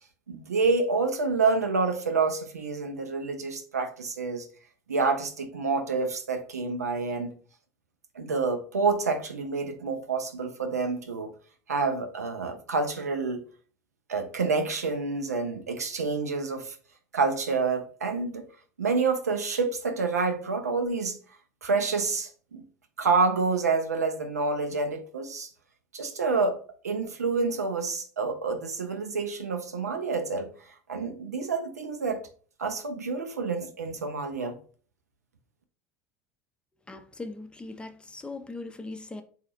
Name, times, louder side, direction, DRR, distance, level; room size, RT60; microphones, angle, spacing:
voice 1, 0.3-4.5 4.9-7.3 8.2-11.3 11.7-13.4 14.1-16.8 17.1-18.5 18.8-21.2 21.6-22.6 23.0-25.5 25.9-26.6 26.8-30.5 30.9-32.2 32.6-34.6, right 4 dB, 90° right, 0.5 m, -28 dB
voice 2, 36.9-39.2, left 3 dB, 10° left, 0.5 m, -40 dB
3.8 x 2.4 x 2.9 m
hypercardioid pair, 75°, 8 cm